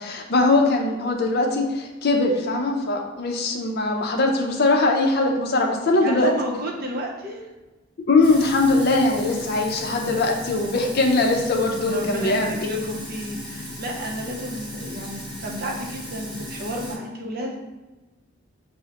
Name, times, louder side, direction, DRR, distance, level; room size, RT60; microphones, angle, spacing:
voice 1, 0.0-6.3 8.0-12.9, left 2 dB, 50° left, 2 dB, 0.5 m, -21 dB
voice 2, 6.0-7.4 11.9-17.6, equal, 45° right, 0 dB, 0.6 m, -32 dB
Sink (filling or washing), 8.2-17.0, left 1 dB, 20° right, 1.1 m, -36 dB
5.9 x 2.1 x 2.8 m, 1.1 s
head